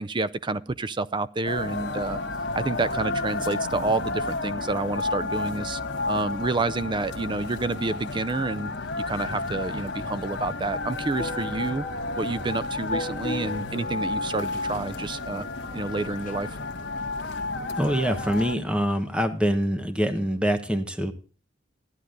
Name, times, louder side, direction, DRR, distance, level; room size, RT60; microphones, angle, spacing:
voice 1, 0.0-2.2 2.6-5.8 6.1-8.7 9.1-11.8 12.2-15.5 15.7-16.5, right 3 dB, 25° right, 0.5 m, -29 dB
sound 1, 1.5-18.6, left 3 dB, 60° left, 1.3 m, -32 dB
sound 2, 11.1-15.0 16.0-16.4 17.0-17.1 17.4-17.5 17.8-17.9 18.2-18.4 20.2-20.3, left 2 dB, 45° left, 0.7 m, -38 dB
voice 2, 17.8-21.1, equal, 5° right, 1.1 m, -25 dB
13.5 x 9.9 x 3.8 m
head